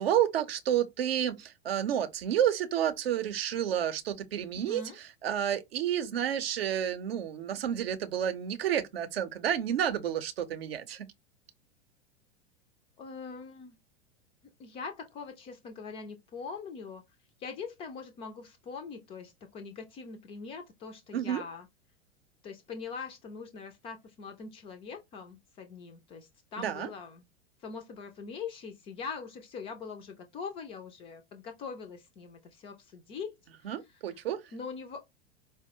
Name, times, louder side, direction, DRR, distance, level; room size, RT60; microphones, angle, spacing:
voice 1, 0.0-11.1 21.1-21.4 26.6-26.9 33.6-34.4, right 10 dB, 60° right, 0.7 m, -30 dB
voice 2, 4.5-5.0 13.0-13.8 14.6-17.0 17.4-21.7 22.4-27.2 27.6-33.7 34.5-35.0, left 5 dB, 15° left, 0.4 m, -42 dB
4.5 x 2.1 x 2.8 m
figure-of-eight pair, 95°, 34 cm